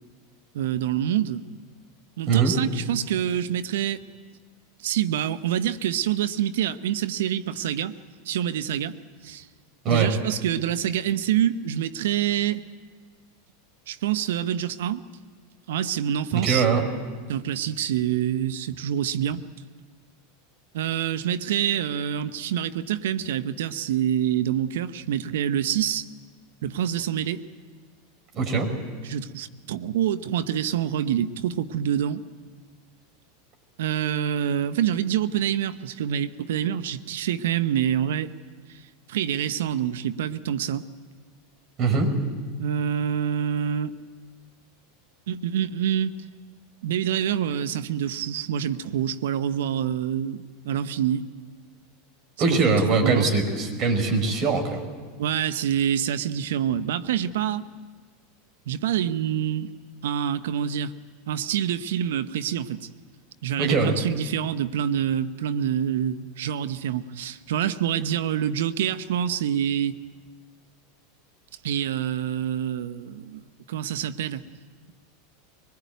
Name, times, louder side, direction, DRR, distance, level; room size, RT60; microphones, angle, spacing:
voice 1, 0.5-1.4 2.2-4.0 4.8-8.0 8.2-9.0 9.2-9.5 9.9-12.6 13.9-15.0 15.7-16.7 17.3-19.4 20.7-26.1 26.6-27.4 29.0-32.2 33.8-38.3 38.7-38.8 39.1-40.8 42.6-44.0 45.3-46.2 46.8-51.2 52.4-52.6 53.0-53.3 55.2-57.7 58.7-59.7 60.0-60.9 61.3-62.9 63.4-70.0 71.6-73.4 73.7-74.4, right 10 dB, 75° right, 13 dB, 0.9 m, -26 dB
voice 2, 16.3-16.8 28.3-28.7 41.8-42.1 52.4-54.9 63.6-63.9, right 4 dB, 45° right, 5 dB, 5.2 m, -22 dB
22.5 x 20.0 x 9.4 m, 1.5 s
hypercardioid pair, 95°, 0 cm